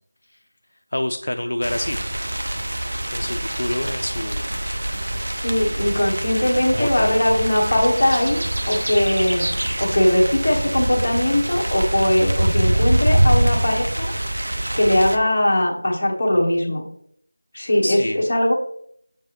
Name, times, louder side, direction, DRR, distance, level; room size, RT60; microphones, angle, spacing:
voice 1, 0.9-2.0 3.1-4.5 5.6-5.7 6.7-7.2 17.8-18.2, left 1 dB, 65° left, 7 dB, 0.3 m, -26 dB
sound 1, 1.6-15.2, right 1 dB, 60° right, 0.7 m, -24 dB
sound 2, 1.6-11.7, equal, 90° right, 1.2 m, -40 dB
voice 2, 5.4-8.4 8.7-9.5 9.8-14.1 14.4-16.8 17.5-18.5, left 1 dB, 30° left, -3 dB, 1.2 m, -20 dB
6.9 x 4.6 x 3.0 m, 0.69 s
figure-of-eight pair, 170°, 0 cm